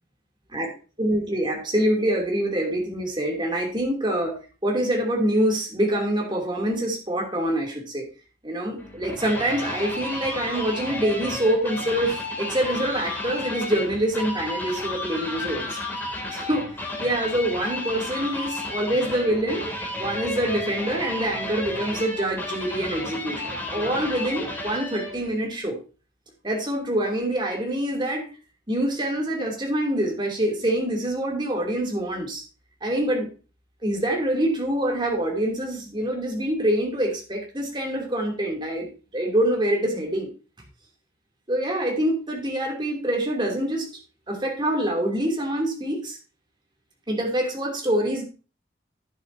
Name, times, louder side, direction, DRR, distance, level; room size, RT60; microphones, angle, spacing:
voice 1, 1.0-8.1 8.4-15.8 16.3-16.7 17.0-19.7 20.0-25.8 26.4-28.3 28.7-32.4 32.8-33.3 33.8-40.3 41.5-43.9 44.3-46.2 47.1-48.2, right 1 dB, 25° right, 0 dB, 2.9 m, -25 dB
sound 1, 8.8-25.3, left 2 dB, 10° left, 2.7 m, -32 dB
10.5 x 10.0 x 2.8 m, 0.34 s
head